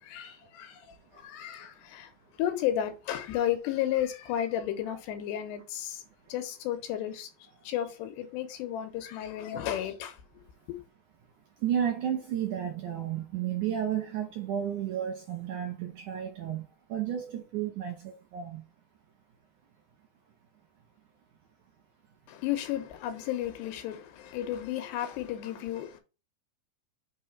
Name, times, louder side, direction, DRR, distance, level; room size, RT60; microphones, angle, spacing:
voice 1, 0.0-2.1 2.4-6.0 6.3-10.2 10.7-10.8 22.3-26.0, left 11 dB, 90° left, 3.1 m, -33 dB
voice 2, 11.6-18.6, right 10 dB, 75° right, 1.9 m, -32 dB
6.8 x 3.1 x 5.4 m
omnidirectional pair, 4.8 m